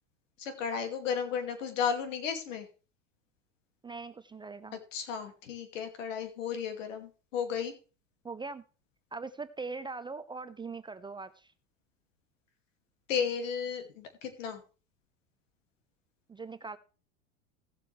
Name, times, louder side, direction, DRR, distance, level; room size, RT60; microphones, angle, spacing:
voice 1, 0.4-2.7 4.9-7.7 13.1-14.6, left 7 dB, 80° left, 7 dB, 2.4 m, -34 dB
voice 2, 3.8-4.8 8.2-8.6 9.1-11.5 16.3-16.8, right 4 dB, 15° right, 12 dB, 0.4 m, -41 dB
16.5 x 7.6 x 3.3 m, 0.34 s
hypercardioid pair, 100°, 37 cm